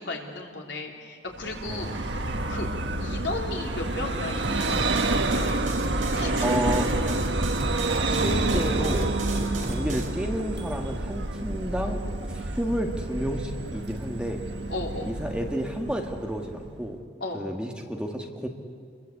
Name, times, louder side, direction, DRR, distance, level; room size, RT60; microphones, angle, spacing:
voice 1, 0.0-2.1 2.5-2.7 3.0-5.2 6.1-6.7 7.1-7.2 9.6-9.8 14.7-15.1 17.2-17.4, left 2 dB, 75° left, 1 dB, 3.4 m, -35 dB
Vehicle, 1.4-16.8, right 2 dB, 75° right, 1.5 m, -28 dB
voice 2, 1.6-2.0 6.4-6.9 8.1-12.0 12.3-14.4 15.0-17.0 17.3-18.5, equal, 5° right, 2 dB, 1.7 m, -31 dB
sound 1, 4.4-10.1, right 1 dB, 45° right, 3.6 m, -36 dB
28.5 x 22.0 x 8.4 m, 2.2 s
head